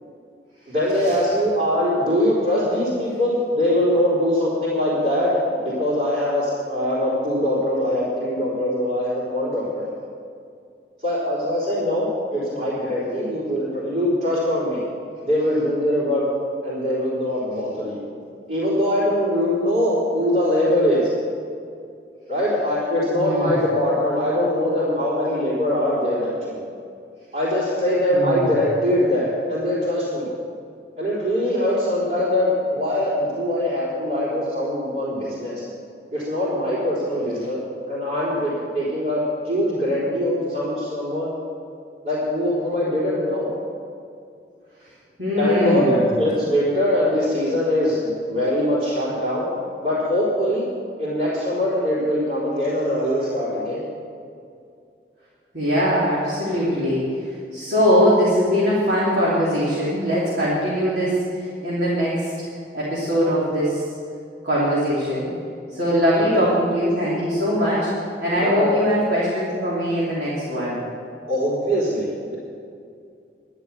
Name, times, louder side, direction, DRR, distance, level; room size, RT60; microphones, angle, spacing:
voice 1, 0.7-9.8 11.0-14.8 15.2-16.2 16.6-18.1 18.5-21.1 22.3-26.6 27.3-30.3 31.0-35.6 36.1-37.6 37.9-41.3 42.0-43.5 45.4-49.5 49.8-50.7 51.0-53.8 66.3-66.5 68.4-68.8 71.3-72.4, left 1 dB, 45° right, -10 dB, 4.0 m, -22 dB
voice 2, 23.1-23.5 28.1-28.5 45.2-46.1 55.5-62.3 62.7-63.8 64.4-65.3 65.7-67.9 68.2-70.8, equal, 70° right, -8 dB, 3.3 m, -21 dB
12.0 x 11.0 x 7.0 m, 2.4 s
head